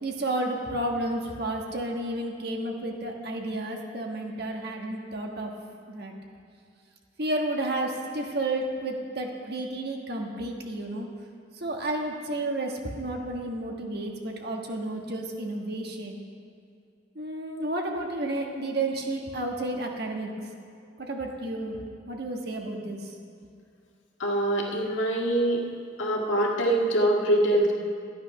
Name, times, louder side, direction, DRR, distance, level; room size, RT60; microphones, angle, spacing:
voice 1, 0.0-5.5 5.9-6.1 7.2-11.1 11.6-16.2 17.1-20.3 21.0-21.8 22.1-23.1, right 1 dB, 60° right, 1 dB, 1.4 m, -31 dB
voice 2, 24.2-25.6 26.0-27.7, right 1 dB, 90° left, -1 dB, 1.8 m, -24 dB
12.5 x 9.3 x 5.9 m, 2.4 s
head